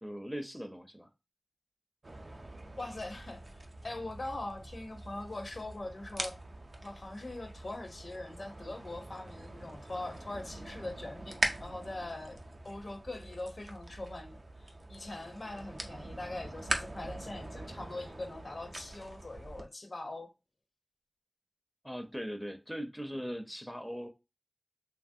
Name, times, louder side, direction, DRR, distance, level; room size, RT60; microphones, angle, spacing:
voice 1, 0.0-1.1 21.8-24.1, equal, ahead, 0.4 m, -40 dB
sound 1, 2.0-19.7, right 2 dB, 65° right, 0.4 m, -42 dB
voice 2, 2.8-6.4 6.8-12.4 12.6-20.3, left 2 dB, 70° left, 0.5 m, -42 dB
2.9 x 2.4 x 2.6 m
wide cardioid pair, 55°, 0 cm